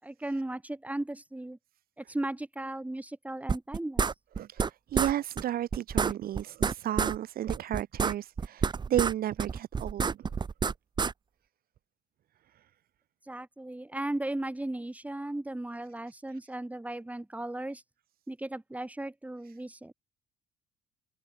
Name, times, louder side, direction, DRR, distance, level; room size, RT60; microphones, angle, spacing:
voice 1, 0.0-1.6 2.0-4.1 13.3-17.8 18.3-19.9, right 1 dB, 10° right, 7.7 m, -36 dB
sound 1, 3.5-4.7 4.9-5.1 5.4-5.5 5.7-7.2 7.5-9.1 9.4-11.1, right 5 dB, 25° right, 0.9 m, -28 dB
voice 2, 4.4-10.3, right 12 dB, 60° right, 2.8 m, -33 dB
cardioid pair, 110°, 17 cm